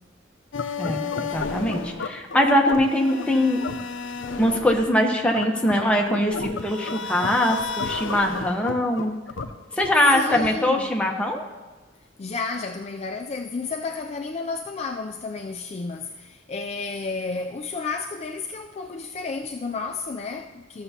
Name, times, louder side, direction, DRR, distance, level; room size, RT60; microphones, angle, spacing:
sound 1, 0.5-10.9, left 5 dB, 80° left, 0.6 m, -32 dB
voice 1, 0.8-3.6 4.4-9.2 9.8-11.4, left 1 dB, 5° left, 0 dB, 0.9 m, -22 dB
voice 2, 10.1-10.9 12.2-20.8, left 4 dB, 35° left, 3 dB, 0.3 m, -32 dB
14.0 x 6.9 x 2.8 m, 1.3 s
head